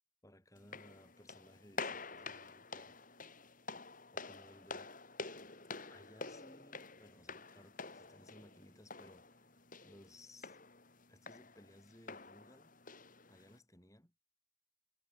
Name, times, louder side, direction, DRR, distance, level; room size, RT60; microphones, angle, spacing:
voice 1, 0.2-2.9 4.1-4.9 5.9-10.6 11.1-12.8 13.3-14.1, left 1 dB, 15° left, 7.2 m, -61 dB
sound 1, 0.6-13.6, left 4 dB, 40° left, 3.9 m, -49 dB
head